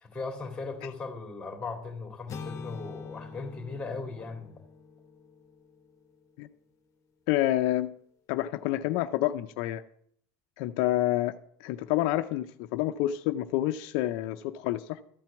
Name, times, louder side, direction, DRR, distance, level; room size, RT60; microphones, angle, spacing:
voice 1, 0.0-4.5, left 4 dB, 10° left, 4 dB, 2.1 m, -38 dB
sound 1, 2.3-6.3, left 5 dB, 35° left, 1.0 m, -45 dB
voice 2, 7.3-7.9 8.3-9.8 10.6-11.3 11.6-15.0, left 14 dB, 70° left, 9 dB, 0.5 m, -28 dB
13.0 x 4.5 x 7.0 m, 0.66 s
supercardioid pair, 130°, 9 cm